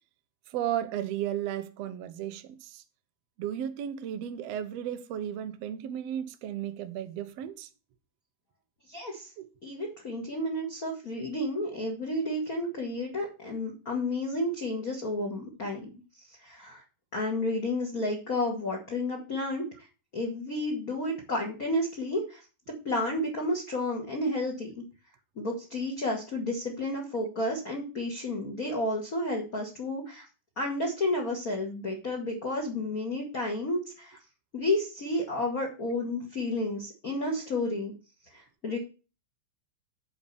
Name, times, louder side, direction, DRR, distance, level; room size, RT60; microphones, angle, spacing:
voice 1, 0.5-2.8 3.4-7.7 9.4-9.5, right 10 dB, 85° right, 1.4 m, -34 dB
voice 2, 8.9-9.3 9.6-15.9 16.4-16.8 17.1-19.6 20.1-22.4 22.8-24.7 25.4-30.2 30.6-34.2 34.5-37.9 38.3-38.8, left 1 dB, 35° left, 1.5 m, -31 dB
10.5 x 4.3 x 6.9 m
omnidirectional pair, 4.2 m